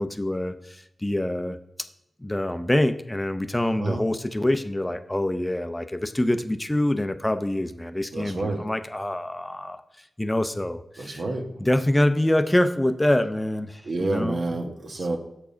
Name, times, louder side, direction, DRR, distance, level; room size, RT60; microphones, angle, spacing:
voice 1, 0.0-1.6 2.2-9.8 10.2-11.2 11.6-14.4, left 1 dB, 15° left, 10 dB, 0.6 m, -25 dB
voice 2, 8.1-8.6 11.0-11.7 13.8-15.2, right 2 dB, 70° right, 4 dB, 1.2 m, -29 dB
7.1 x 4.7 x 5.1 m, 0.84 s
cardioid pair, 55°, 0 cm